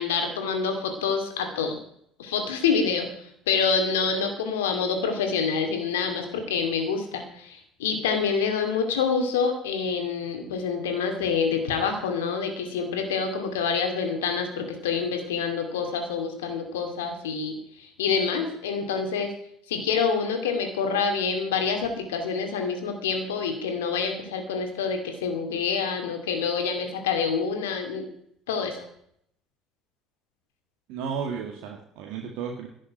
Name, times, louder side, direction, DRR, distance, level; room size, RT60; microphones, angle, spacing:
voice 1, 0.0-1.8 2.2-3.1 3.5-17.5 17.8-19.3 19.7-28.0 28.5-28.8, left 5 dB, 80° left, 5 dB, 2.4 m, -27 dB
voice 2, 30.9-32.7, right 6 dB, 65° right, 1 dB, 2.0 m, -33 dB
11.5 x 7.4 x 9.6 m, 0.68 s
hypercardioid pair, 65°, 0 cm